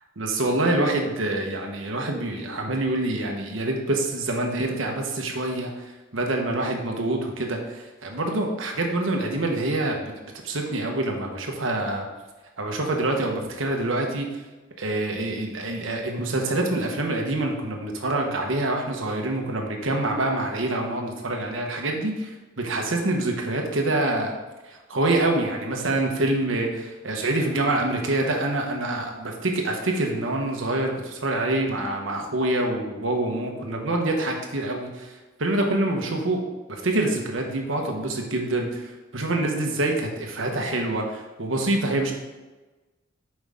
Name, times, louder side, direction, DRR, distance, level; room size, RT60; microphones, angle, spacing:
voice 1, 0.2-10.1 10.4-12.1 12.6-14.3 14.8-24.4 24.7-35.1 35.4-36.4 36.7-42.1, right 2 dB, 80° right, 2 dB, 1.2 m, -26 dB
7.9 x 5.3 x 3.6 m, 1.2 s
head